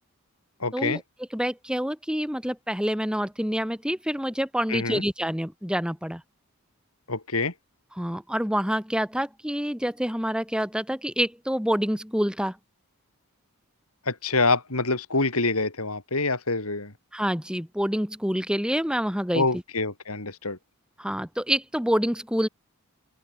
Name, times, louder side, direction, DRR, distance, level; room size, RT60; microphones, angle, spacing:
voice 1, 0.6-1.0 4.7-5.0 7.1-7.5 14.1-16.9 19.3-20.6, left 3 dB, 80° left, 4.6 m, -26 dB
voice 2, 1.3-6.2 8.0-12.6 17.1-19.5 21.0-22.5, equal, 5° right, 2.9 m, -27 dB
open air
head